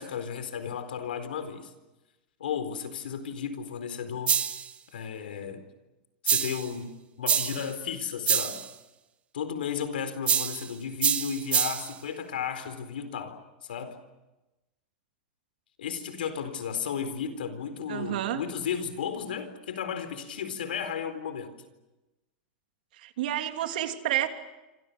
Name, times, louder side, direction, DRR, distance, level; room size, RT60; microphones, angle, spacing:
voice 1, 0.0-1.7 2.4-4.4 4.9-5.6 6.2-6.9 7.2-8.6 9.3-14.0 15.8-21.5, left 7 dB, 90° left, 10 dB, 4.2 m, -34 dB
sound 1, 4.3-4.7 6.3-6.7 7.3-7.7 8.3-8.7 10.3-10.7 11.0-11.9, right 8 dB, 25° right, 1.8 m, -26 dB
voice 2, 17.9-18.4 22.9-24.3, right 12 dB, 70° right, 6 dB, 3.0 m, -30 dB
27.5 x 27.0 x 6.9 m, 1.0 s
supercardioid pair, 130°, 5 cm